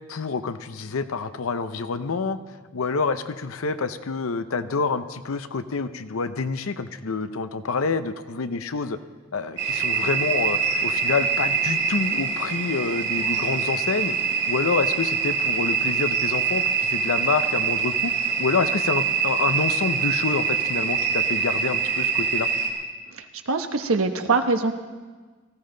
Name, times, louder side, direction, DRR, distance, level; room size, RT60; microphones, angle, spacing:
voice 1, 0.1-2.4 2.7-9.0 9.3-14.2 14.5-18.1 18.4-22.5, left 4 dB, 85° left, 11 dB, 0.7 m, -27 dB
sound 1, 9.6-22.7, right 6 dB, 55° right, 2.3 m, -24 dB
voice 2, 23.1-24.7, right 3 dB, 85° right, 7 dB, 1.1 m, -23 dB
18.5 x 14.5 x 3.9 m, 1.4 s
head